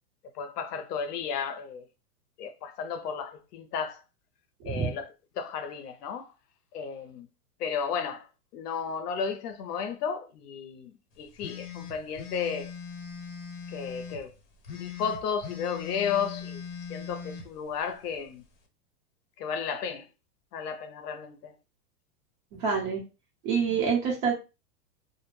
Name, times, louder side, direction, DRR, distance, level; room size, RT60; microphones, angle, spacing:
voice 1, 0.4-1.8 2.4-4.0 4.7-5.1 5.4-6.3 6.7-7.3 7.6-8.2 8.5-10.9 11.2-12.7 13.7-14.3 14.7-16.6 16.9-18.4 19.4-20.1 20.5-21.5, left 6 dB, 75° left, 0.6 m, -33 dB
sound 1, 11.4-14.2 14.6-17.4, left 7 dB, 40° left, 1.0 m, -40 dB
voice 2, 22.5-23.0 23.4-24.3, right 6 dB, 35° right, 1.1 m, -26 dB
2.3 x 2.1 x 3.1 m
supercardioid pair, 155°, 47 cm